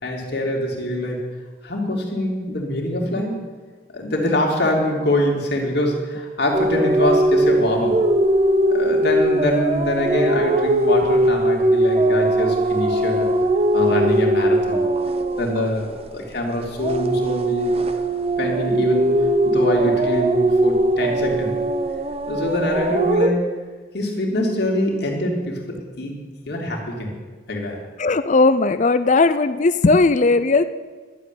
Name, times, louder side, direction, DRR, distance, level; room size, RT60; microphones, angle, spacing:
voice 1, 0.0-1.2 1.6-3.3 3.9-8.0 8.7-13.3 13.7-14.8 15.4-17.8 18.4-19.2 19.4-21.6 22.3-23.5 23.9-26.1 26.5-27.1 27.5-27.8, left 1 dB, 55° left, 0 dB, 2.8 m, -24 dB
sound 1, 6.5-16.3 16.7-23.3, right 1 dB, 30° right, 0.7 m, -20 dB
voice 2, 28.0-30.6, left 3 dB, 40° left, 12 dB, 0.5 m, -17 dB
11.5 x 7.7 x 9.9 m, 1.4 s
head